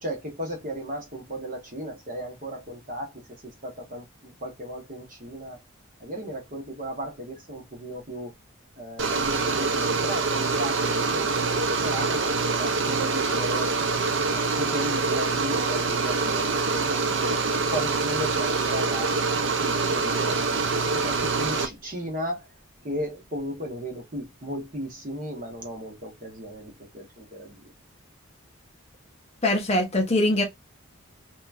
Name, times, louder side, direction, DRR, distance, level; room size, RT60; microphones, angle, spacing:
voice 1, 0.0-3.2 3.6-5.6 6.0-8.3 8.8-13.7 14.3-19.1 19.6-20.7 20.9-22.5 22.8-27.7, equal, 40° right, 0.9 m, -35 dB
sound 1, 9.0-21.7, right 4 dB, 60° right, 0.5 m, -25 dB
voice 2, 29.4-30.4, left 1 dB, 30° left, 0.5 m, -22 dB
2.8 x 2.3 x 2.3 m
head